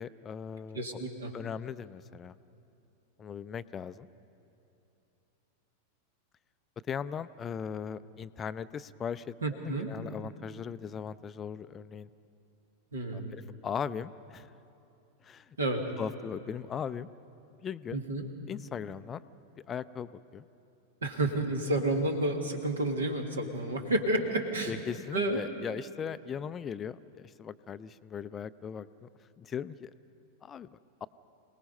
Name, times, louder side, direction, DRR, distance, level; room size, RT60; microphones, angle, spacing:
voice 1, 0.0-0.8 1.3-2.3 3.2-4.1 6.9-12.1 13.1-14.5 15.2-15.4 16.0-17.1 17.6-18.0 18.5-19.2 19.7-20.4 24.7-29.1 29.4-29.9 30.4-30.7 31.0-31.1, left 7 dB, 25° left, 15 dB, 0.4 m, -38 dB
voice 2, 0.7-1.3 9.4-9.9 12.9-13.3 15.6-15.8 17.9-18.3 21.0-24.8 25.1-25.4, right 1 dB, 70° right, 4 dB, 2.0 m, -30 dB
27.0 x 18.5 x 5.4 m, 2.9 s
figure-of-eight pair, 90°, 0 cm